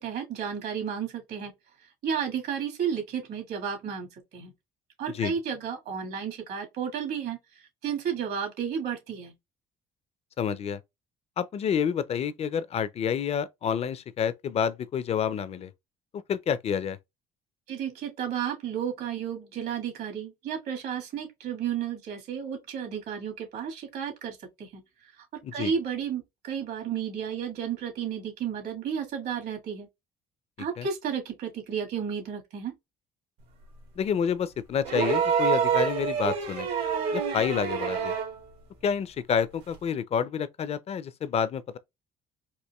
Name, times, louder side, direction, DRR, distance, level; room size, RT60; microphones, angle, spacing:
voice 1, 0.0-1.5 2.0-4.1 4.3-4.5 5.0-7.4 7.8-9.3 17.7-24.8 25.5-29.9 30.6-32.7, right 7 dB, 70° right, 1.7 m, -32 dB
voice 2, 10.4-10.8 11.4-15.7 16.1-17.0 25.4-25.7 30.8-30.9 34.0-36.7 37.1-38.1 38.8-41.8, left 7 dB, 40° left, 0.4 m, -29 dB
sound 1, 34.8-38.4 39.7-39.8, right 7 dB, 90° right, 1.7 m, -27 dB
4.3 x 2.6 x 2.2 m
cardioid pair, 110°, 17 cm